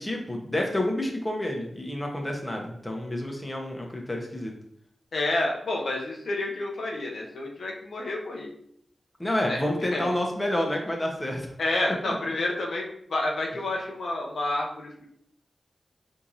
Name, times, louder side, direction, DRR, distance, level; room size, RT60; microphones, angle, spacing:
voice 1, 0.0-4.5 9.2-11.5 12.0-12.1, left 1 dB, 20° left, 1 dB, 0.9 m, -29 dB
voice 2, 5.1-8.5 9.5-9.6 9.9-10.1 11.6-15.0, left 2 dB, 80° left, -1 dB, 0.6 m, -29 dB
4.5 x 2.8 x 2.7 m, 0.69 s
cardioid pair, 50°, 0 cm